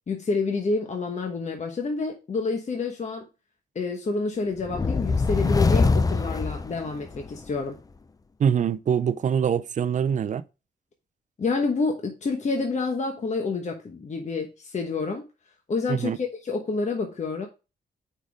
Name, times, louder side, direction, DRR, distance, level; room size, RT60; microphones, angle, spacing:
voice 1, 0.1-3.2 3.7-7.8 11.4-15.2 15.7-17.5, left 4 dB, 45° left, 1.1 m, -28 dB
sound 1, 4.6-7.4, left 4 dB, 20° left, 0.5 m, -23 dB
voice 2, 8.4-10.4 15.9-16.2, right 8 dB, 45° right, 0.5 m, -24 dB
5.2 x 4.2 x 4.9 m
cardioid pair, 80°, 17 cm